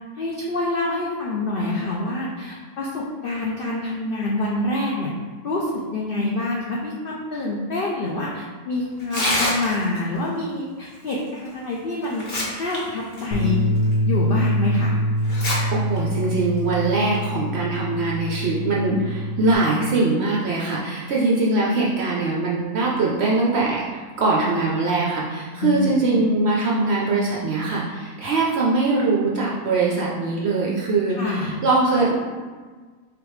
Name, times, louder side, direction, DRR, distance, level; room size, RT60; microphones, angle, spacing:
voice 1, 0.1-5.1 5.4-12.2 12.6-13.7 14.1-14.9 25.6-25.7 26.0-26.2 31.2-31.6, left 2 dB, 85° left, -4 dB, 0.4 m, -26 dB
Tearing, 9.0-10.0 11.5-11.6 12.0-12.8 13.1-13.2 13.9-14.0 15.2-15.6 16.0-16.1 16.9-17.2, left 1 dB, 45° left, 1.0 m, -25 dB
Bass guitar, 13.3-19.6, equal, 65° left, 1.2 m, -24 dB
voice 2, 15.7-32.2, right 3 dB, 65° right, -4 dB, 0.6 m, -22 dB
3.7 x 3.4 x 3.1 m, 1.5 s
omnidirectional pair, 1.5 m